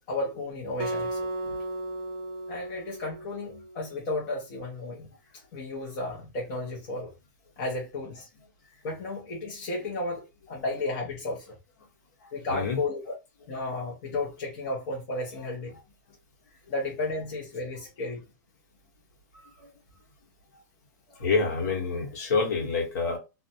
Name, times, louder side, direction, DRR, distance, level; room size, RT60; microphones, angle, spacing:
voice 1, 0.1-1.3 2.5-5.1 5.5-7.1 7.6-8.3 8.8-11.5 12.3-13.1 13.5-15.7 16.7-18.2, left 2 dB, 30° left, 0.7 m, -33 dB
Acoustic guitar, 0.8-4.0, right 2 dB, 35° right, 0.4 m, -35 dB
voice 2, 12.2-12.8 15.4-15.5 19.3-19.7 21.1-23.2, left 4 dB, 55° left, 1.0 m, -28 dB
2.5 x 2.1 x 2.7 m
supercardioid pair, 175°, 11 cm